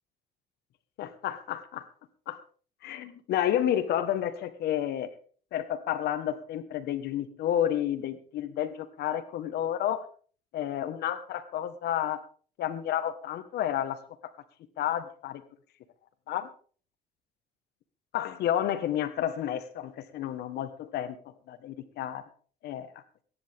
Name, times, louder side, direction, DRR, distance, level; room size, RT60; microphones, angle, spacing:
voice 1, 1.0-1.8 2.3-2.4 2.8-5.1 5.5-10.0 10.5-12.2 12.6-14.0 14.8-15.4 16.3-16.5 18.1-21.2 21.5-22.2 22.6-22.9, left 11 dB, 75° left, 11 dB, 1.5 m, -30 dB
22.0 x 10.5 x 3.6 m, 0.43 s
cardioid pair, 110°, 17 cm